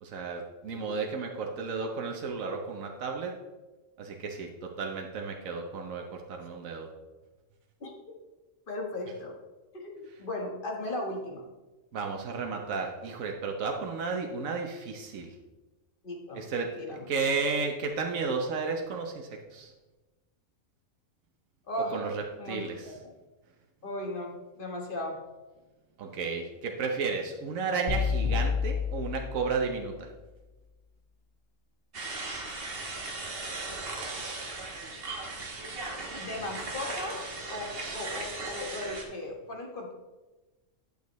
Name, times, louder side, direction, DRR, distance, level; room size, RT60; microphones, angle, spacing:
voice 1, 0.0-3.3 4.0-6.9 11.9-15.3 16.3-19.7 21.9-22.9 26.0-30.1, right 4 dB, 90° right, 2 dB, 1.3 m, -33 dB
voice 2, 8.7-9.4 9.7-11.4 16.0-16.5 16.8-17.1 21.6-22.0 22.4-23.1 23.8-25.2 36.1-39.9, left 1 dB, 40° left, 1 dB, 1.5 m, -37 dB
sound 1, 27.9-30.0, left 6 dB, 60° left, 1.8 m, -30 dB
sound 2, 31.9-39.0, right 3 dB, 50° right, 1.4 m, -37 dB
10.5 x 6.7 x 3.1 m, 1.2 s
omnidirectional pair, 1.4 m